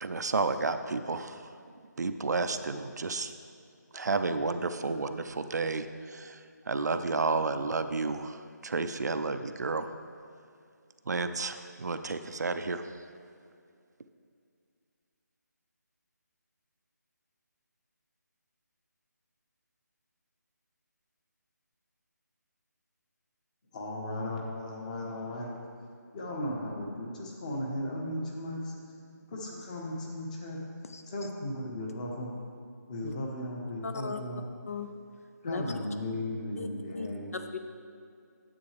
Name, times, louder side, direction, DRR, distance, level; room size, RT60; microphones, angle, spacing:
voice 1, 0.0-1.5 2.0-3.3 3.9-9.9 11.1-12.8, right 3 dB, 65° right, 9 dB, 0.5 m, -31 dB
voice 2, 23.7-25.5 26.1-28.9 29.3-30.6 31.1-32.3 32.9-34.4 35.4-37.3, left 1 dB, 25° left, -1 dB, 1.1 m, -36 dB
voice 3, 33.8-34.2 34.7-34.9 35.4-35.6 36.6-36.7 37.0-37.1 37.3-37.6, left 4 dB, 55° left, 7 dB, 0.5 m, -36 dB
9.6 x 7.7 x 3.3 m, 2.3 s
figure-of-eight pair, 160°, 10 cm